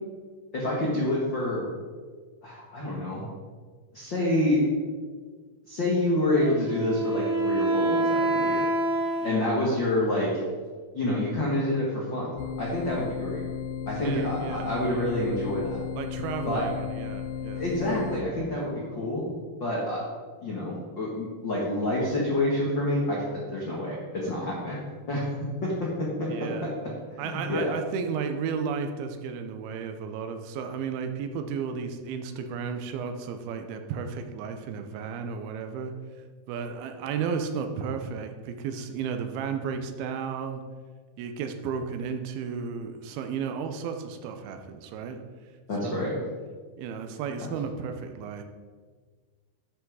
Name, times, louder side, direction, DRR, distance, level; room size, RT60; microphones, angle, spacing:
voice 1, 0.5-1.7 2.4-3.2 3.9-4.6 5.7-8.6 9.2-10.3 10.9-12.3 12.6-13.4 13.9-15.8 16.4-16.6 17.5-19.2 19.6-20.0 20.4-24.8 25.1-25.9 26.2-26.7 27.1-27.7 45.7-46.1, left 1 dB, 65° left, -5 dB, 1.1 m, -28 dB
Wind instrument woodwind instrument, 6.4-10.0, right 2 dB, 60° right, 2.8 m, -27 dB
sound 1, 12.4-18.2, left 8 dB, 80° left, 2.6 m, -35 dB
voice 2, 14.0-15.1 16.0-17.7 18.5-18.7 26.3-26.7 27.2-35.9 36.5-40.6 41.2-45.2 45.8-46.1 46.8-48.4, right 6 dB, 75° right, 7 dB, 2.5 m, -33 dB
11.5 x 5.9 x 4.8 m, 1.5 s
omnidirectional pair, 4.8 m